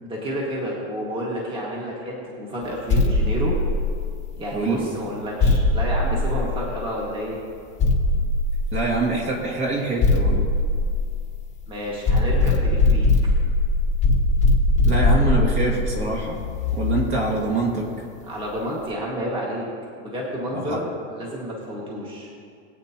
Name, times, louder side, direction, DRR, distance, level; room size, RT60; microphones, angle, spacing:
voice 1, 0.0-3.5 4.4-7.4 11.7-13.3 18.3-19.7 20.0-22.3, equal, 15° right, -4 dB, 2.0 m, -30 dB
sound 1, 2.9-4.4 5.4-7.0 7.8-9.2 10.0-11.6 12.1-17.3, left 2 dB, 20° left, 1.4 m, -21 dB
voice 2, 4.5-4.8 8.7-10.5 14.9-16.4 16.7-18.0 20.5-20.8, right 3 dB, 35° right, -1 dB, 2.2 m, -25 dB
22.0 x 8.6 x 3.0 m, 2.3 s
supercardioid pair, 150°, 36 cm